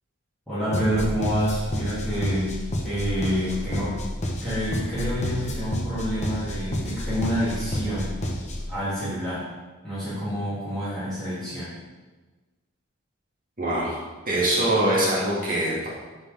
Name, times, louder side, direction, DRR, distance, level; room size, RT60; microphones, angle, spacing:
voice 1, 0.5-2.6 2.8-3.9 4.4-8.2 8.7-9.4 9.8-11.7, equal, ahead, -15 dB, 2.8 m, -27 dB
sound 1, 0.7-8.7, left 1 dB, 35° left, 1.1 m, -30 dB
voice 2, 13.6-14.0 14.3-15.9, right 1 dB, 40° right, -7 dB, 2.2 m, -23 dB
12.0 x 5.2 x 3.6 m, 1.3 s
head